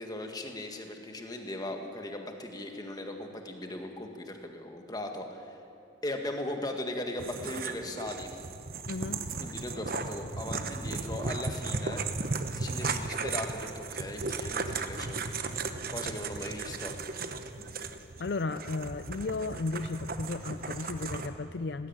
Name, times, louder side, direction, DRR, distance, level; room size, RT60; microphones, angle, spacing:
voice 1, 0.0-5.6 6.0-8.4 9.4-12.0 12.5-16.9, left 1 dB, 20° left, 4 dB, 1.8 m, -38 dB
sound 1, 7.2-21.3, right 4 dB, 50° right, 1.0 m, -36 dB
voice 2, 8.9-9.2 17.7-17.8 18.2-21.9, left 3 dB, 60° left, 11 dB, 0.5 m, -34 dB
19.5 x 16.0 x 8.8 m, 2.6 s
head